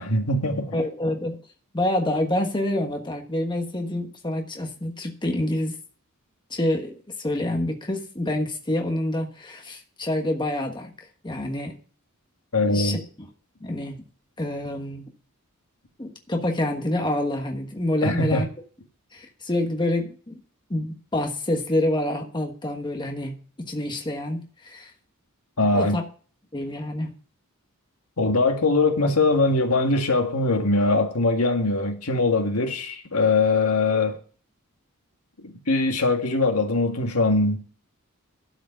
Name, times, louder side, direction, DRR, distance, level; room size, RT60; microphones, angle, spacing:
voice 1, 0.0-0.8 12.5-13.0 18.0-18.5 25.6-26.0 28.2-34.2 35.4-37.6, left 3 dB, 85° left, 1.8 m, -22 dB
voice 2, 0.7-1.4 1.7-5.7 6.5-10.9 11.2-11.7 12.6-13.0 13.6-14.0 14.4-15.1 16.0-18.5 19.1-20.4 20.7-23.3 23.7-24.9 25.7-26.0 26.5-27.1, left 1 dB, 20° left, 1.3 m, -27 dB
12.0 x 5.1 x 6.7 m
head